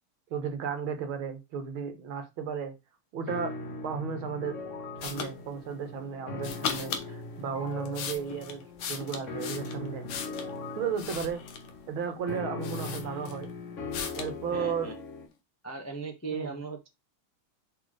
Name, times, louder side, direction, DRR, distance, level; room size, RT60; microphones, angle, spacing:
voice 1, 0.3-2.7 3.1-3.5 3.8-4.6 5.0-8.6 8.9-10.1 10.8-11.5 11.9-13.5 14.1-14.9 16.3-16.5, right 6 dB, 70° right, 2.0 m, -34 dB
sound 1, 3.3-15.3, left 3 dB, 45° left, 1.1 m, -40 dB
sound 2, 5.0-5.3 6.4-7.1 7.7-10.5 11.0-11.8 12.3-12.4 12.6-13.5 13.9-14.3, left 7 dB, 80° left, 1.9 m, -37 dB
voice 2, 14.5-14.9 15.6-16.9, right 4 dB, 25° left, 0.3 m, -37 dB
5.6 x 4.2 x 4.9 m
omnidirectional pair, 2.4 m